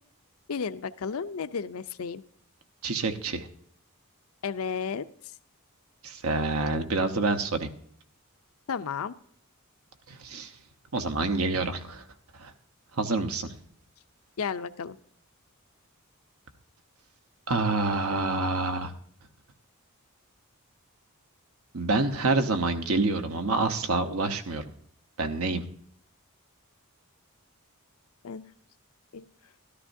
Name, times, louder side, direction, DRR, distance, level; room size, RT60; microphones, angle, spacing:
voice 1, 0.5-2.2 4.4-5.1 8.7-9.2 14.4-15.0 28.2-28.4 29.1-29.3, left 6 dB, 70° left, 13 dB, 0.5 m, -33 dB
voice 2, 2.8-3.5 6.0-7.7 10.1-10.5 10.9-12.0 12.4-12.5 12.9-13.5 17.5-18.9 21.7-24.6 25.2-25.6, right 3 dB, 75° right, 8 dB, 1.0 m, -27 dB
13.5 x 13.0 x 2.7 m, 0.62 s
head